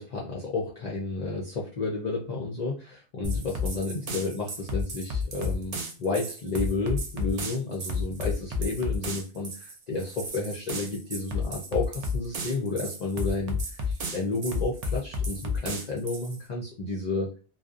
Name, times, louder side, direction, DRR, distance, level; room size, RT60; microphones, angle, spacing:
voice 1, 0.0-17.3, left 3 dB, 55° left, -3 dB, 0.5 m, -31 dB
sound 1, 3.2-16.4, left 3 dB, 55° right, 0.4 m, -32 dB
2.6 x 2.0 x 2.4 m, 0.35 s
omnidirectional pair, 1.1 m